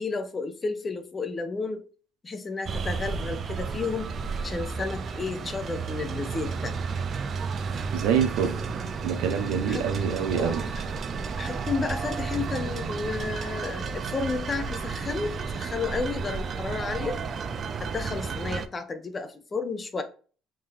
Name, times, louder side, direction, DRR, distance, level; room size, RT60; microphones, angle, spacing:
voice 1, 0.0-1.8 2.2-4.1 4.4-6.7 9.7-9.9 10.4-10.5 11.4-17.2 17.8-20.0, left 4 dB, 25° left, 0.6 m, -32 dB
sound 1, 2.7-18.7, right 5 dB, 45° right, 0.4 m, -32 dB
voice 2, 7.9-8.6 9.0-10.7, right 7 dB, 85° right, 0.7 m, -26 dB
3.7 x 2.7 x 3.3 m
cardioid pair, 105°, 0 cm